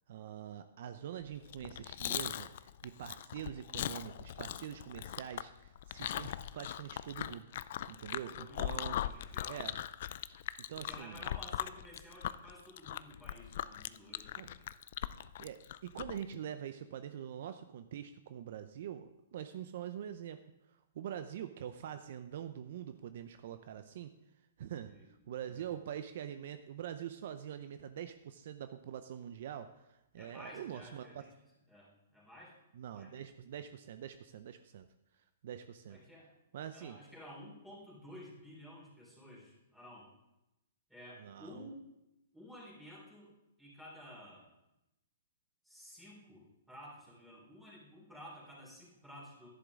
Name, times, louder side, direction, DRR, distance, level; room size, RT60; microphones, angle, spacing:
voice 1, 0.1-7.5 7.9-9.1 9.5-9.8 10.7-11.3 14.4-14.5 15.4-20.4 20.9-24.1 24.6-24.9 25.3-31.2 32.7-34.9 35.4-36.0 36.5-37.0 41.2-41.7, right 9 dB, 60° right, 10 dB, 0.5 m, -44 dB
Chewing mastication, 1.4-16.2, left 11 dB, 55° left, 0.4 m, -40 dB
voice 2, 8.2-9.7 10.8-14.7 24.9-25.0 25.5-25.7 30.2-31.3 31.7-32.6 32.9-33.1 35.9-36.3 36.7-40.1 40.9-41.8 42.3-43.3 43.6-44.5 45.6-49.5, equal, 5° right, -5 dB, 3.8 m, -53 dB
11.0 x 10.5 x 3.7 m, 0.92 s
hypercardioid pair, 150°, 0 cm